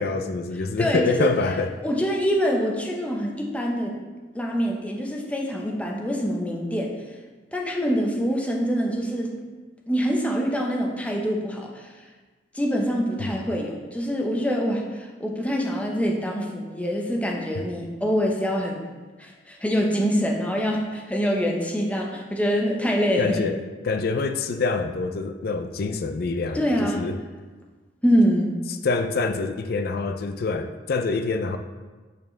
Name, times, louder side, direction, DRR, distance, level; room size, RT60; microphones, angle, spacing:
voice 1, 0.0-1.7 13.2-13.3 23.2-23.6 23.8-27.2 28.8-31.6, left 3 dB, 60° left, 7 dB, 0.4 m, -26 dB
voice 2, 0.8-1.3 1.8-3.9 4.3-7.0 7.5-9.3 9.9-11.9 12.5-18.9 19.2-23.4 26.5-27.1 28.0-28.5, equal, 10° left, 0 dB, 0.8 m, -25 dB
8.3 x 4.4 x 3.3 m, 1.3 s
head